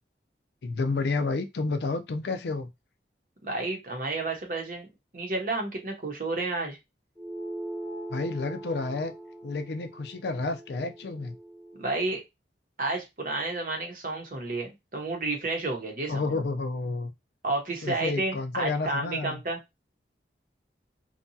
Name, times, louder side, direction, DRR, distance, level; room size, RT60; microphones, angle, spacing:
voice 1, 0.6-2.7 8.1-9.1 9.4-11.4 16.1-17.1 17.8-19.4, left 3 dB, 70° left, 0.4 m, -30 dB
voice 2, 3.4-6.8 11.8-12.2 12.8-16.4 17.4-19.6, right 2 dB, 50° right, 0.8 m, -31 dB
sound 1, 7.2-12.0, right 1 dB, 15° right, 0.9 m, -41 dB
2.7 x 2.3 x 2.6 m
head